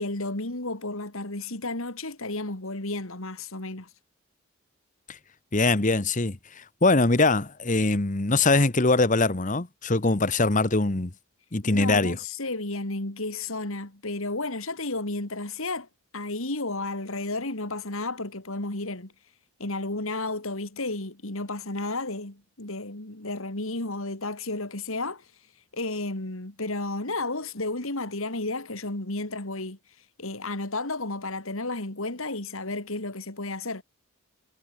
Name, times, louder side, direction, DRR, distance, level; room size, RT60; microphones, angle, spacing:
voice 1, 0.0-3.9 11.6-15.9 16.1-19.1 19.6-25.3 25.7-29.8 30.2-33.8, left 2 dB, 70° left, 3.1 m, -32 dB
voice 2, 5.5-11.1 11.5-12.2, left 3 dB, 35° left, 1.2 m, -22 dB
head